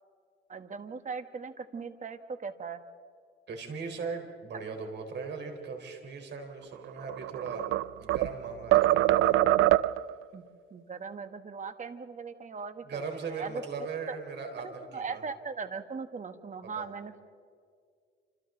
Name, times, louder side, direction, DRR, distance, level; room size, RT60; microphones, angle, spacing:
voice 1, 0.5-2.8 10.3-10.4 10.7-13.6 14.1-14.2 14.6-17.2, right 5 dB, 40° right, 9 dB, 1.5 m, -39 dB
voice 2, 3.5-7.7 8.0-9.4 12.8-15.2 16.8-16.9, right 5 dB, 60° right, 4 dB, 4.2 m, -39 dB
sound 1, 7.0-8.4 8.7-10.1, right 15 dB, 85° right, 0.5 m, -23 dB
29.0 x 26.5 x 3.9 m, 2.2 s
cardioid pair, 90°, 20 cm